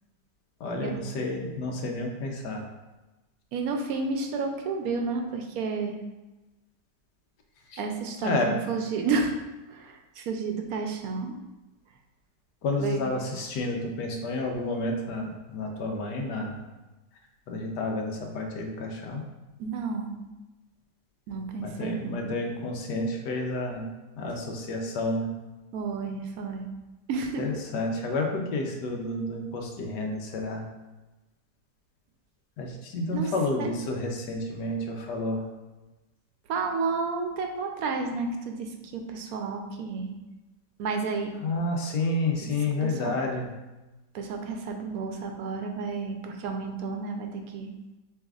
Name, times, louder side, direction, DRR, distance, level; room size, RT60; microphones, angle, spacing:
voice 1, 0.6-2.6 7.7-7.8 8.2-8.6 12.6-16.6 17.5-19.2 21.6-23.9 24.2-25.3 27.4-30.7 32.6-35.4 41.4-43.5, left 2 dB, 85° left, 2 dB, 1.4 m, -30 dB
voice 2, 3.5-6.0 7.8-9.3 9.7-11.4 12.8-13.0 19.6-20.2 21.3-22.2 25.7-26.7 27.1-27.5 33.1-33.3 33.6-33.7 36.5-40.2 40.8-41.3 42.4-42.5 42.8-43.2 44.1-47.7, right 4 dB, 70° right, 4 dB, 1.0 m, -31 dB
6.9 x 3.2 x 2.4 m, 1.1 s
omnidirectional pair, 1.8 m